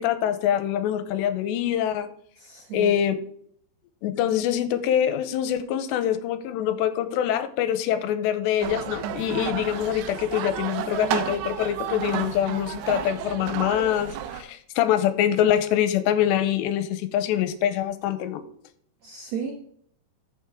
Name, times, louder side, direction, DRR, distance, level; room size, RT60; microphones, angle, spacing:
voice 1, 0.0-2.1 2.7-3.2 4.0-18.4, left 10 dB, 85° left, 11 dB, 2.9 m, -24 dB
voice 2, 2.4-3.0 19.0-19.5, right 7 dB, 65° right, 2 dB, 1.7 m, -34 dB
sound 1, 8.6-14.4, right 9 dB, 85° right, 3.0 m, -31 dB
14.5 x 7.1 x 3.6 m, 0.64 s
omnidirectional pair, 5.0 m